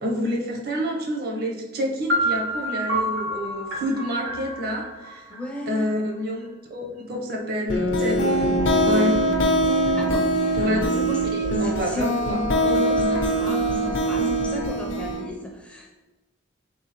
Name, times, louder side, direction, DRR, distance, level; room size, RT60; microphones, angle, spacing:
voice 1, 0.0-5.3 5.7-8.5 8.8-9.1 10.6-11.0 11.3-12.6, equal, 50° right, 0 dB, 0.7 m, -28 dB
sound 1, 2.1-5.9, right 1 dB, 85° right, 0.8 m, -28 dB
voice 2, 5.3-5.9 9.9-10.4 10.9-11.2 11.5-12.1 12.6-15.9, left 1 dB, 5° left, -1 dB, 0.4 m, -35 dB
sound 2, 7.7-15.2, right 1 dB, 70° left, 0.6 m, -22 dB
3.8 x 3.6 x 2.9 m, 1.2 s
head